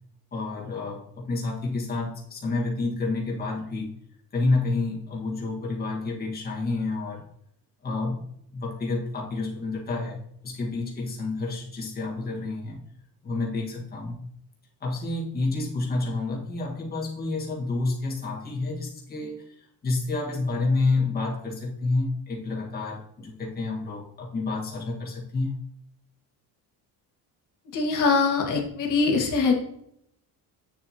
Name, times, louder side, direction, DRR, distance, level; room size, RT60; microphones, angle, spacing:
voice 1, 0.3-3.9 4.3-7.2 7.8-8.2 8.5-12.8 13.2-14.3 14.8-25.5, left 3 dB, 25° left, -3 dB, 1.6 m, -29 dB
voice 2, 27.7-29.5, left 4 dB, 50° left, 1 dB, 1.8 m, -22 dB
8.2 x 7.2 x 2.9 m, 0.72 s
cardioid pair, 165°, 39 cm